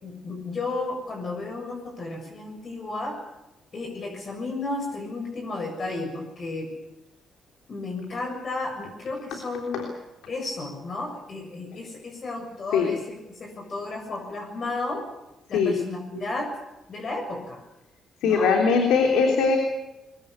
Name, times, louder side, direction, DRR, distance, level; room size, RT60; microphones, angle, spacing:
voice 1, 0.0-3.2 3.7-6.7 7.7-9.9 10.3-15.0 15.5-16.5 16.9-17.6 18.2-18.5, left 3 dB, 45° left, 2 dB, 7.1 m, -33 dB
voice 2, 18.2-19.6, left 5 dB, 90° left, 2 dB, 3.4 m, -20 dB
22.0 x 22.0 x 8.4 m, 0.97 s
cardioid pair, 90°, 0 cm